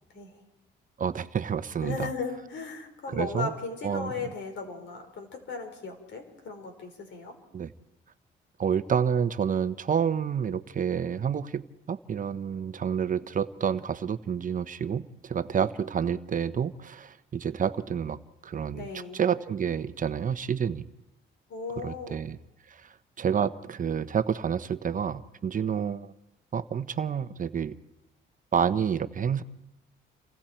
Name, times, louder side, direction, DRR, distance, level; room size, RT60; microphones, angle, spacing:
voice 1, 1.0-2.1 3.1-3.5 3.8-4.3 7.5-7.7 8.6-18.9 19.1-20.8 21.8-22.4 22.7-26.1 26.5-27.8 28.5-29.4, right 7 dB, 40° right, 12 dB, 0.9 m, -29 dB
voice 2, 1.8-7.4 18.7-19.2 21.5-22.2, left 4 dB, 70° left, 5 dB, 5.0 m, -36 dB
29.5 x 25.0 x 4.5 m, 0.94 s
cardioid pair, 90°, 20 cm